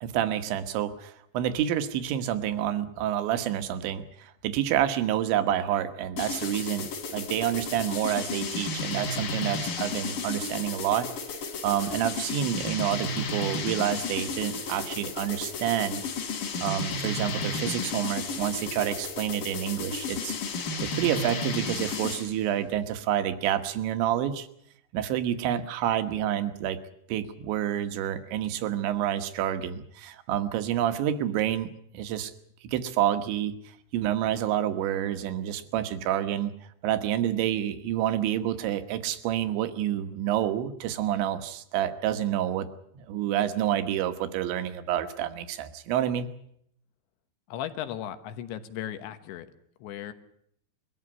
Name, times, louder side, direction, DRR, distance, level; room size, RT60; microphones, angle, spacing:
voice 1, 0.0-11.1 11.6-16.0 16.6-20.4 20.8-24.5 24.9-26.8 27.1-31.7 31.9-32.3 32.6-33.6 33.9-36.5 36.8-42.7 43.0-46.3, right 11 dB, 80° right, 10 dB, 3.5 m, -28 dB
sound 1, 6.2-22.4, left 4 dB, 50° left, 4.1 m, -33 dB
voice 2, 47.5-49.5 49.8-50.1, left 11 dB, 80° left, 9 dB, 3.5 m, -36 dB
22.0 x 14.0 x 9.7 m, 0.71 s
omnidirectional pair, 5.3 m